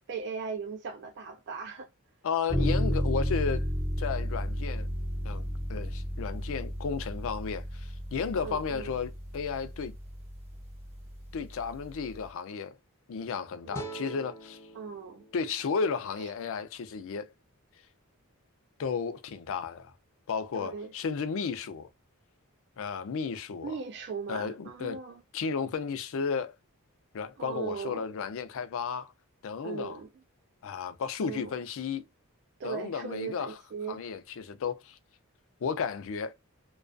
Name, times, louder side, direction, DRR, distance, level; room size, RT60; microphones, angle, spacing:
voice 1, 0.1-1.9 8.3-8.9 13.6-13.8 14.7-15.2 16.2-16.3 20.5-20.9 23.6-25.2 27.4-28.1 29.6-30.1 31.2-31.6 32.6-34.1, right 5 dB, 50° right, 0.3 m, -38 dB
voice 2, 2.2-3.7 4.0-4.9 5.2-5.4 5.7-9.9 11.3-12.8 13.1-14.6 15.3-17.3 18.8-19.9 20.3-21.9 22.8-23.7 24.3-25.0 25.3-26.6 27.1-29.1 29.4-30.0 30.6-32.0 32.6-33.5 33.9-35.0 35.6-36.3, left 5 dB, 65° left, 0.4 m, -33 dB
sound 1, 2.5-12.2, equal, 30° right, 0.8 m, -33 dB
sound 2, 13.7-16.9, right 3 dB, 10° left, 0.5 m, -45 dB
2.3 x 2.2 x 2.4 m
head